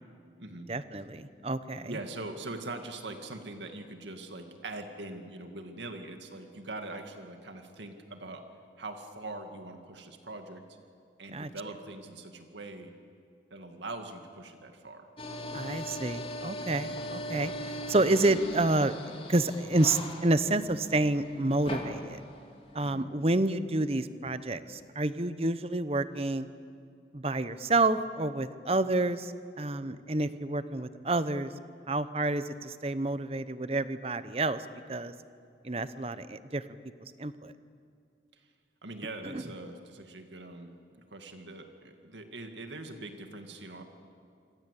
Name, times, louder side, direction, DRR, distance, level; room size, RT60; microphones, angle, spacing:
voice 1, 0.7-2.0 11.3-11.5 15.5-17.5 17.9-18.9 19.3-22.2 22.7-26.5 27.1-31.5 31.9-35.1 35.6-36.6 37.2-37.5 39.2-39.4, right 2 dB, 35° right, 13 dB, 0.9 m, -29 dB
voice 2, 1.9-8.4 8.8-10.6 11.2-12.9 13.5-15.1 22.8-23.1 38.3-38.4 38.8-40.7 41.1-43.8, right 2 dB, 85° right, 5 dB, 2.2 m, -42 dB
sound 1, 15.2-22.9, equal, 30° left, 2.7 m, -40 dB
27.0 x 25.5 x 8.4 m, 2.4 s
head